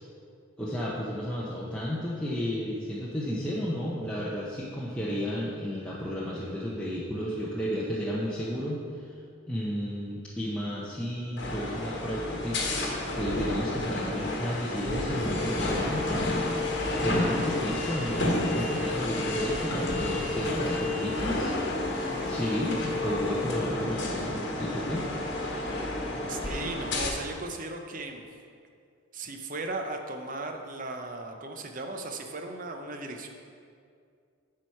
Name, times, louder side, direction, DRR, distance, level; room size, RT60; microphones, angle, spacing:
voice 1, 0.6-9.1 9.5-16.2 17.0-21.5 22.2-25.1, equal, 5° left, -8 dB, 0.7 m, -32 dB
sound 1, 11.4-27.1, left 2 dB, 55° left, 1.2 m, -30 dB
voice 2, 26.3-28.2 29.1-33.3, right 2 dB, 40° right, 4 dB, 0.6 m, -37 dB
8.8 x 4.7 x 5.6 m, 2.3 s
head